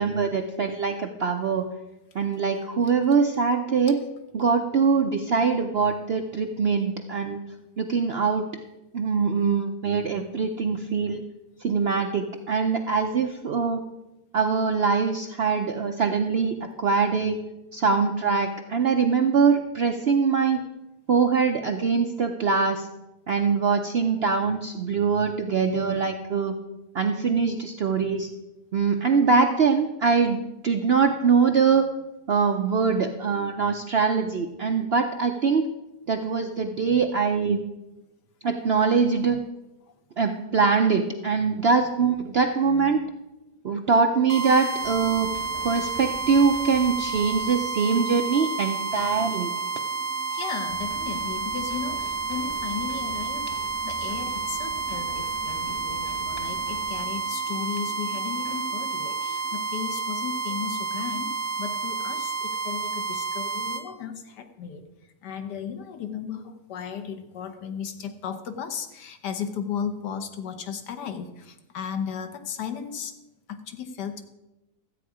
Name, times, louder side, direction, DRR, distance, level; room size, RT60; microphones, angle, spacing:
voice 1, 0.0-1.7 2.1-4.0 4.3-7.4 7.8-8.5 8.9-11.2 11.6-13.8 14.3-17.4 17.7-20.6 21.1-22.9 23.3-26.6 26.9-28.3 28.7-31.9 32.3-35.7 36.1-37.6 38.4-39.4 40.2-43.0 43.6-45.3 45.6-49.5, right 5 dB, 65° right, 5 dB, 0.6 m, -23 dB
sound 1, 44.3-63.8, right 5 dB, 35° right, 1.2 m, -30 dB
sound 2, 44.8-59.5, equal, 15° left, 1.4 m, -45 dB
voice 2, 50.3-64.9 65.2-73.1 73.5-74.2, left 7 dB, 85° left, 7 dB, 1.6 m, -35 dB
13.0 x 8.5 x 4.8 m, 1.0 s
omnidirectional pair, 1.8 m